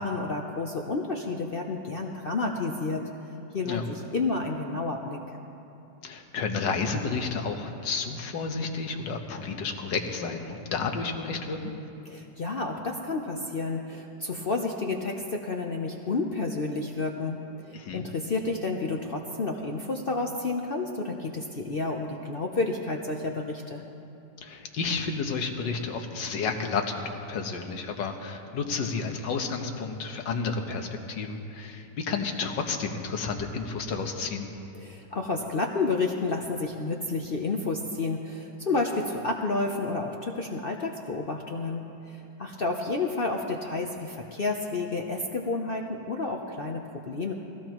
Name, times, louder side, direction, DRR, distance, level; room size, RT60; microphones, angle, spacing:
voice 1, 0.0-3.0 3.5-5.4 12.0-23.8 34.7-47.3, left 3 dB, 50° left, 2 dB, 0.6 m, -30 dB
voice 2, 6.0-11.6 17.7-18.1 24.4-34.5, left 4 dB, 85° left, 4 dB, 1.7 m, -31 dB
21.0 x 16.5 x 3.0 m, 2.7 s
omnidirectional pair, 1.9 m